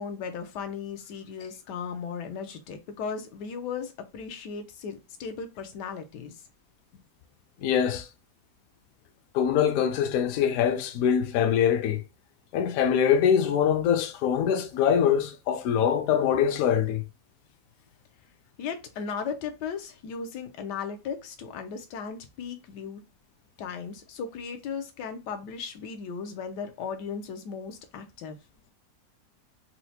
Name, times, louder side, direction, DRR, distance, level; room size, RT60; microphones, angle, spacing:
voice 1, 0.0-6.4 18.6-23.0 23.6-28.4, left 6 dB, 90° left, 1.3 m, -36 dB
voice 2, 7.6-8.1 9.3-12.0 12.5-17.0, left 8 dB, 70° left, 0.9 m, -23 dB
4.3 x 2.1 x 2.7 m
omnidirectional pair, 1.8 m